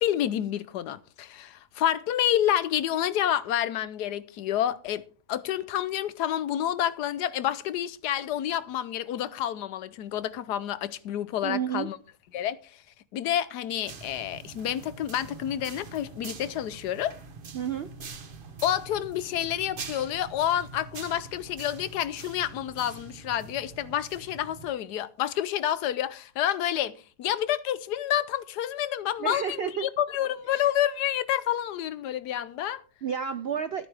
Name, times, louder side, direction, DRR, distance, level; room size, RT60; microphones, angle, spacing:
voice 1, 0.0-12.0 12.3-12.6 13.1-17.1 18.6-32.8, left 11 dB, 85° left, 1.3 m, -29 dB
voice 2, 11.4-11.9 17.5-17.9 29.2-29.9 30.5-30.7 33.0-33.9, right 7 dB, 70° right, 0.5 m, -31 dB
sound 1, 13.9-24.7, right 4 dB, 40° right, 1.0 m, -44 dB
13.0 x 11.0 x 3.4 m
omnidirectional pair, 1.7 m